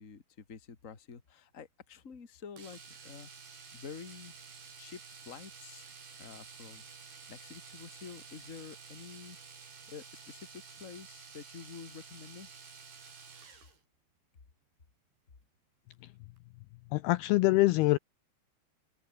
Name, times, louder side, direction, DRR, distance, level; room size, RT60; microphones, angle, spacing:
voice 1, 0.0-3.3 3.7-4.3 4.8-12.5, left 5 dB, 25° left, 1.7 m, -49 dB
Domestic sounds home sounds, 2.6-13.8 15.9-16.1 16.4-16.5, right 5 dB, 60° right, 8.0 m, -51 dB
voice 2, 16.9-18.0, left 20 dB, 85° left, 2.3 m, -24 dB
omnidirectional pair, 5.1 m